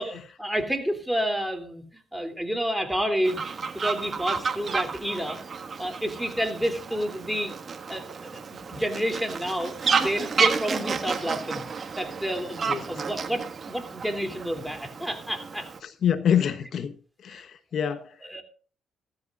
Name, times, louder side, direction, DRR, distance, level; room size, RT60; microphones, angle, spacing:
voice 1, 0.0-5.4 5.8-7.5 7.9-8.4 8.7-11.7 12.0-15.7 18.2-18.4, equal, ahead, 6 dB, 3.1 m, -30 dB
Fowl, 3.2-15.8, right 5 dB, 45° right, 1.7 m, -31 dB
voice 2, 15.8-17.0 17.2-18.1, left 8 dB, 60° left, 11 dB, 1.1 m, -26 dB
16.0 x 14.0 x 2.5 m, 0.40 s
cardioid pair, 90°, 0 cm